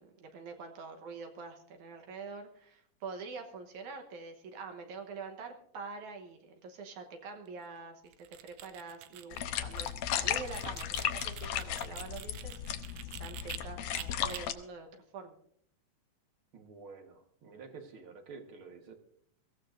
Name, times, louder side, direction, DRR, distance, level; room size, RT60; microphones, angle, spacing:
voice 1, 0.0-14.9 15.1-15.3, right 4 dB, 70° right, 4 dB, 2.4 m, -45 dB
sound 1, 8.1-13.6 13.9-14.4, right 13 dB, 85° right, 2.4 m, -47 dB
sound 2, 9.3-14.5, left 10 dB, 70° left, 1.7 m, -35 dB
voice 2, 16.5-18.9, right 4 dB, 50° right, 5 dB, 1.8 m, -49 dB
23.0 x 15.5 x 2.6 m, 0.66 s
omnidirectional pair, 3.8 m